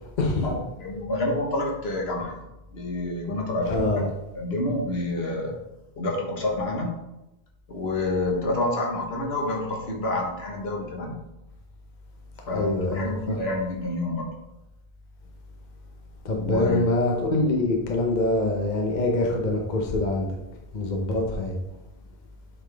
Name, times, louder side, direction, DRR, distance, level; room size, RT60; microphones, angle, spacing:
voice 1, 0.8-2.5 2.7-3.8 4.3-5.5 6.0-6.9 7.7-11.1 12.5-14.3 16.4-16.9, left 2 dB, 70° left, 0 dB, 1.5 m, -28 dB
voice 2, 3.7-4.1 12.5-13.4 16.2-20.3 20.7-21.6, left 2 dB, 45° left, 1 dB, 1.0 m, -25 dB
7.9 x 4.1 x 3.4 m, 0.93 s
omnidirectional pair, 1.1 m